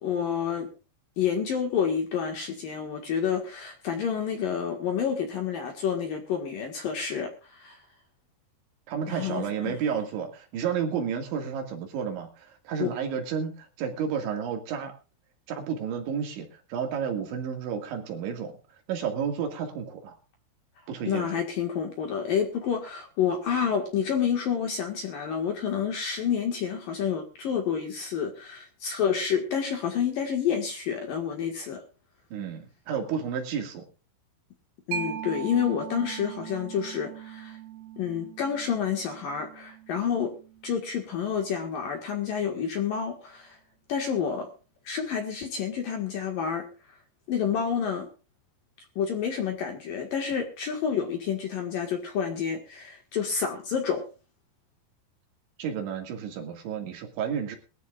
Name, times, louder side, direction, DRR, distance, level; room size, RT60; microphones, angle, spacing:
voice 1, 0.0-0.7 1.2-7.8 9.1-9.7 12.8-12.9 21.1-31.8 34.9-37.6 38.0-40.3 40.6-43.6 43.9-44.5 44.8-46.7 47.3-48.1 49.0-54.1, left 7 dB, 55° left, 3 dB, 2.8 m, -29 dB
voice 2, 8.9-14.9 15.5-18.5 18.9-20.2 20.9-21.4 32.3-33.8 55.6-57.6, right 7 dB, 70° right, 3 dB, 4.4 m, -31 dB
Mallet percussion, 34.9-42.2, right 10 dB, 85° right, 4.1 m, -41 dB
22.0 x 14.0 x 2.5 m, 0.34 s
omnidirectional pair, 5.8 m